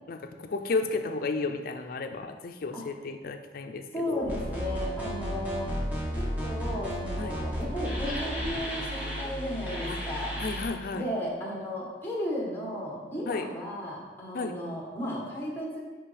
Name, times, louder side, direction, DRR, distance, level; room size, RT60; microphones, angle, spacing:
voice 1, 0.1-4.3 7.2-7.3 9.9-10.0 10.4-11.0 13.3-13.5 14.3-14.5, left 3 dB, 55° left, 7 dB, 0.4 m, -33 dB
voice 2, 3.9-5.9 6.1-10.4 10.9-15.8, equal, 15° left, -2 dB, 1.2 m, -34 dB
sound 1, 4.2-10.7, equal, 10° right, 1.3 m, -33 dB
5.8 x 5.3 x 3.3 m, 1.3 s
head